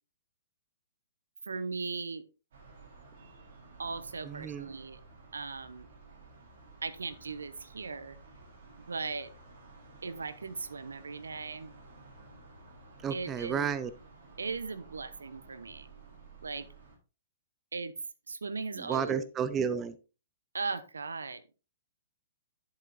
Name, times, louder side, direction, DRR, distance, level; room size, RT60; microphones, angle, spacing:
voice 1, 1.5-2.2 3.8-5.0 5.3-5.9 6.8-8.2 8.8-9.3 10.0-11.7 13.1-13.7 14.4-15.9 16.4-16.7 17.7-17.9 18.3-19.3 20.5-21.4, right 4 dB, 75° right, 15 dB, 0.8 m, -38 dB
sound 1, 2.5-17.0, right 3 dB, 55° right, 4.3 m, -54 dB
voice 2, 4.2-4.7 13.0-13.9 18.8-20.0, right 7 dB, 20° right, 14 dB, 0.6 m, -32 dB
11.0 x 7.4 x 2.7 m, 0.33 s
figure-of-eight pair, 115°, 0 cm